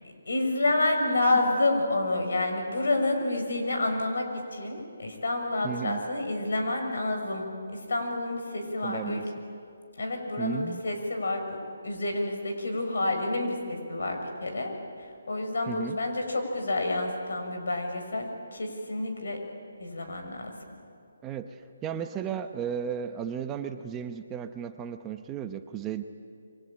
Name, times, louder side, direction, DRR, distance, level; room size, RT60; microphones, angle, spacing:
voice 1, 0.3-4.3 4.5-7.4 7.7-9.2 10.0-11.5 11.8-14.7 15.0-19.4 19.8-20.5, left 2 dB, 75° left, 4 dB, 6.2 m, -29 dB
voice 2, 5.6-6.0 8.8-9.2 10.4-10.8 15.7-16.0 21.2-26.0, right 8 dB, 15° right, 7 dB, 0.9 m, -34 dB
28.0 x 24.0 x 8.7 m, 2.3 s
hypercardioid pair, 165°, 0 cm